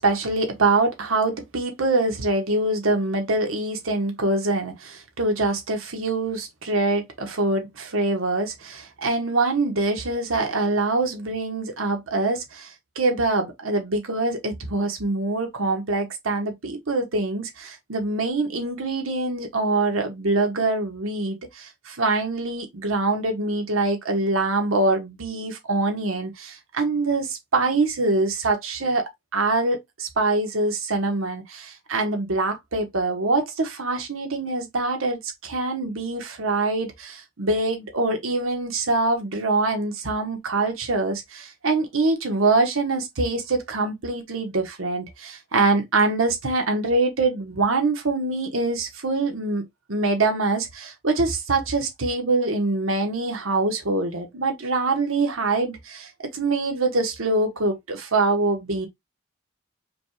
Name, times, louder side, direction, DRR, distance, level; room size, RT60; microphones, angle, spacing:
voice 1, 0.0-12.7 13.0-49.6 49.9-56.1 56.3-58.9, right 2 dB, 80° right, 1.2 m, -24 dB
5.1 x 2.4 x 3.1 m
head